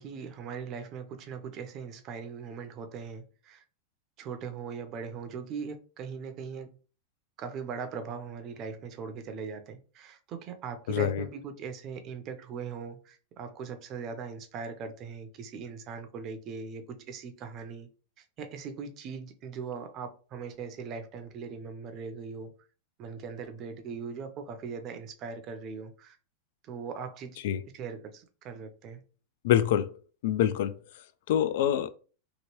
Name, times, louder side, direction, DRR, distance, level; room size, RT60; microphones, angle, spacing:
voice 1, 0.0-3.6 4.2-6.8 7.4-17.9 18.2-22.5 23.0-26.2 26.6-27.4 27.7-29.0, right 5 dB, 35° right, 0.6 m, -40 dB
voice 2, 10.9-11.2 27.4-27.6 29.4-29.9 30.2-30.7 31.3-31.9, left 10 dB, 70° left, 0.3 m, -25 dB
2.9 x 2.7 x 3.0 m
supercardioid pair, 140°, 0 cm